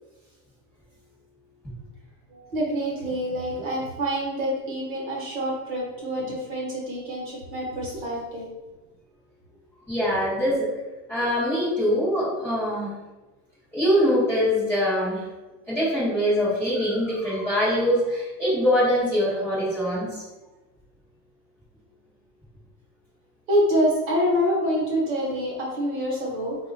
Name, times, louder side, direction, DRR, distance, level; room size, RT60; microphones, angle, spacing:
voice 1, 2.3-8.5 23.5-26.6, equal, 30° right, -4 dB, 1.0 m, -26 dB
voice 2, 9.9-10.7 11.1-12.9 13.7-15.2 15.7-20.2, equal, 5° left, -14 dB, 0.6 m, -23 dB
4.0 x 2.3 x 3.1 m, 1.1 s
supercardioid pair, 175°, 44 cm